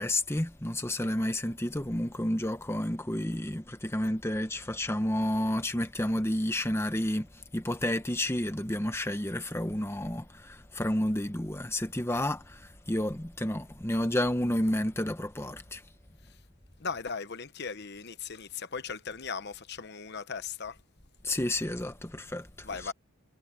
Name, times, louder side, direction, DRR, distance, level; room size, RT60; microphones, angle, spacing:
voice 1, 0.0-15.8 21.2-22.9, left 1 dB, 10° left, 0.9 m, -31 dB
voice 2, 16.8-20.8 22.6-22.9, left 5 dB, 50° left, 1.0 m, -38 dB
head